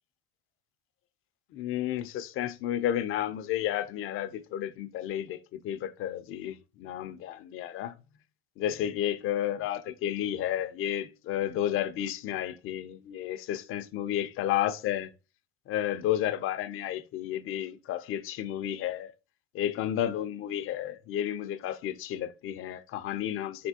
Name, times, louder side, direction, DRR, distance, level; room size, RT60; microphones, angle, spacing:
voice 1, 1.5-7.9 8.6-15.1 15.7-19.1 19.5-23.7, left 11 dB, 45° left, 0.5 m, -32 dB
4.2 x 3.4 x 2.8 m
supercardioid pair, 95°, 30 cm